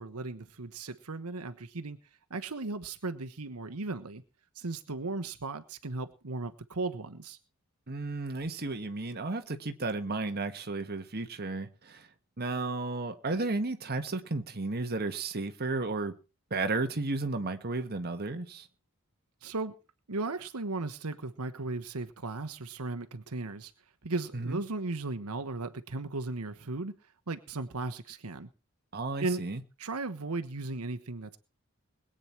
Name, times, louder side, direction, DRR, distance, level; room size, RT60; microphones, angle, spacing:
voice 1, 0.0-2.0 2.3-4.2 4.5-7.4 19.4-19.7 20.1-23.7 24.0-26.9 27.3-28.5 29.2-29.4 29.8-31.4, right 3 dB, 90° right, 1.2 m, -36 dB
voice 2, 7.9-12.1 12.4-16.1 16.5-18.7 24.3-24.6 28.9-29.6, right 3 dB, 45° right, 1.5 m, -33 dB
21.5 x 9.1 x 4.5 m
head